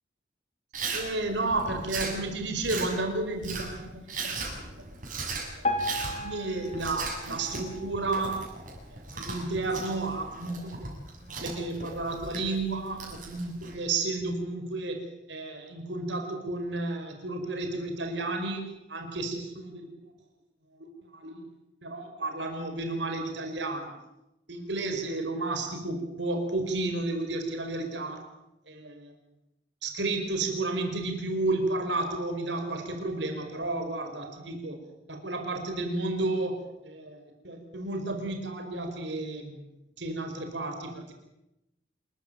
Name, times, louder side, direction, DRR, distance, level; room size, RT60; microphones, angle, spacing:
Chewing mastication, 0.7-13.7, right 3 dB, 45° right, 6.9 m, -38 dB
voice 1, 0.9-4.4 4.8-4.9 5.6-5.7 5.9-8.4 8.9-10.9 11.2-15.0 15.3-20.1 20.8-21.4 21.8-23.9 24.5-28.2 28.7-29.1 29.8-34.8 35.1-37.2 37.4-39.7 40.0-41.1, right 2 dB, 75° right, 4 dB, 5.0 m, -32 dB
Piano, 5.6-8.7 9.3-9.4 9.7-9.8 10.5-10.6 11.2-11.3, left 1 dB, 40° left, 3.8 m, -35 dB
27.0 x 14.5 x 9.2 m, 0.91 s
head